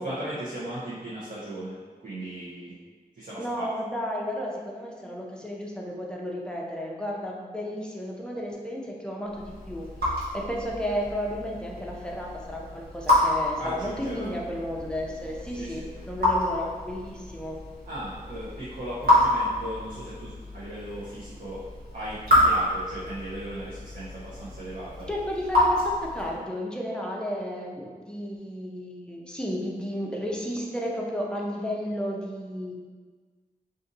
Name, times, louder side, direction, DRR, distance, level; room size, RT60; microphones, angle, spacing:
voice 1, 0.0-2.8 3.2-3.7 13.6-14.3 15.6-15.8 17.9-21.6 21.9-25.1, right 1 dB, 55° right, -10 dB, 0.8 m, -37 dB
voice 2, 3.4-9.9 10.3-17.6 25.1-32.7, equal, 5° left, -2 dB, 0.6 m, -33 dB
Raindrop / Drip, 9.3-26.5, left 1 dB, 85° right, 1.2 m, -28 dB
2.6 x 2.5 x 3.9 m, 1.5 s
wide cardioid pair, 80°, 16 cm